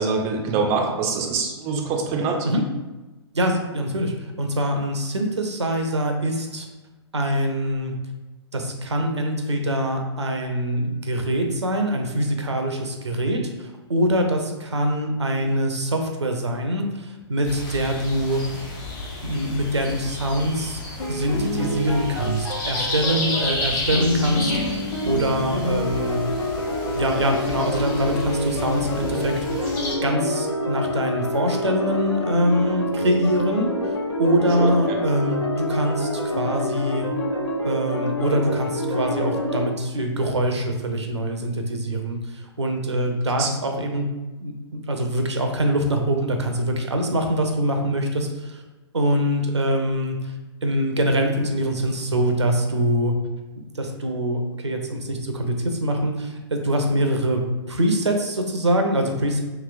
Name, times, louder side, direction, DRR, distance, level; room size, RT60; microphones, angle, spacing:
voice 1, 0.0-2.5 34.6-34.7 43.4-43.5, right 4 dB, 20° right, 1 dB, 0.3 m, -24 dB
voice 2, 3.3-6.7 7.1-7.9 8.5-18.4 19.2-20.8 21.1-26.2 26.9-29.7 30.0-36.1 36.4-37.1 37.6-44.1 44.4-48.6 48.9-50.3 50.6-53.1 53.7-57.4 57.7-59.4, right 1 dB, 75° right, 4 dB, 0.5 m, -24 dB
sound 1, 17.4-29.9, left 2 dB, 40° left, 1.1 m, -32 dB
sound 2, 21.0-39.6, left 1 dB, 70° left, 0.6 m, -27 dB
3.0 x 2.9 x 2.5 m, 1.1 s
figure-of-eight pair, 115°, 15 cm